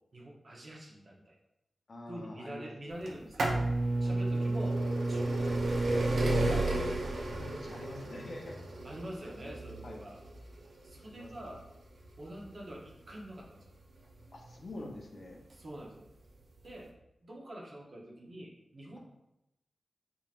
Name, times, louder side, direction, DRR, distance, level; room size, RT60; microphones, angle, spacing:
voice 1, 0.1-1.4 2.1-3.7 4.0-4.8 5.1-7.1 8.8-10.2 10.8-11.6 12.2-13.6 15.5-16.1 16.6-16.9 17.2-19.0, right 1 dB, 45° right, -2 dB, 0.8 m, -46 dB
voice 2, 1.9-3.1 4.0-4.2 7.2-8.8 9.2-9.6 9.8-10.0 11.1-11.3 14.3-15.4, left 1 dB, 60° left, 0 dB, 0.8 m, -46 dB
sound 1, 3.1-14.7 15.5-15.6 16.6-16.7 16.9-17.0, right 2 dB, 75° right, 0.6 m, -32 dB
4.1 x 3.8 x 2.5 m, 0.87 s
wide cardioid pair, 115°, 0 cm